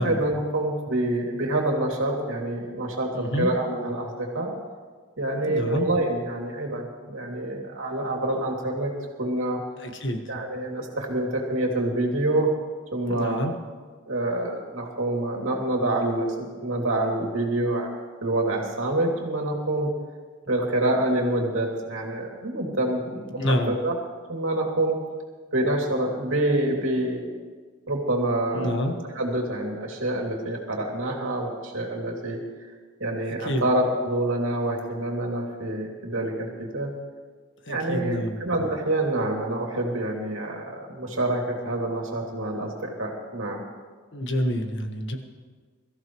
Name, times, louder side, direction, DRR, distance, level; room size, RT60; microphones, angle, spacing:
voice 1, 0.0-4.6 5.2-8.9 9.2-9.6 10.3-12.5 12.9-13.4 14.1-16.3 16.6-17.9 18.2-19.9 20.5-24.0 24.3-25.0 25.5-27.3 27.9-32.4 33.0-36.9 37.7-43.6, right 1 dB, 70° right, 0 dB, 2.6 m, -27 dB
voice 2, 3.1-3.5 5.5-5.9 9.8-10.2 13.1-13.5 23.4-23.7 28.5-29.0 33.3-33.6 37.7-38.4 44.1-45.2, left 1 dB, 60° left, 5 dB, 1.5 m, -27 dB
22.5 x 14.5 x 3.1 m, 1.5 s
head